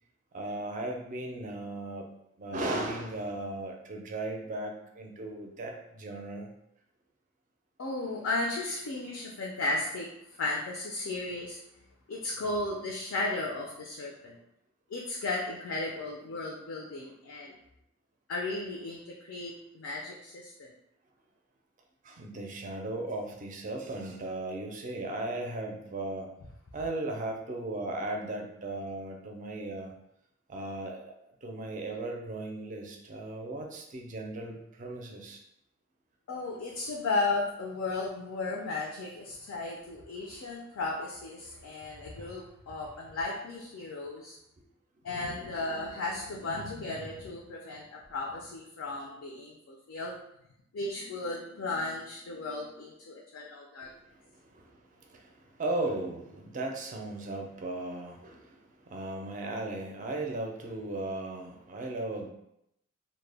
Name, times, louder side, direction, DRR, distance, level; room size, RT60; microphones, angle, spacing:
voice 1, 0.3-2.1 2.4-6.5 22.0-26.3 26.7-29.9 30.5-31.1 31.4-35.4 53.8-62.3, right 2 dB, 40° right, 2 dB, 0.4 m, -37 dB
voice 2, 7.8-10.1 10.4-11.6 12.1-14.4 14.9-17.5 18.3-20.7 36.3-44.4 45.0-50.2 50.7-53.9, left 2 dB, 75° left, -2 dB, 0.4 m, -35 dB
2.1 x 2.1 x 3.3 m, 0.78 s
head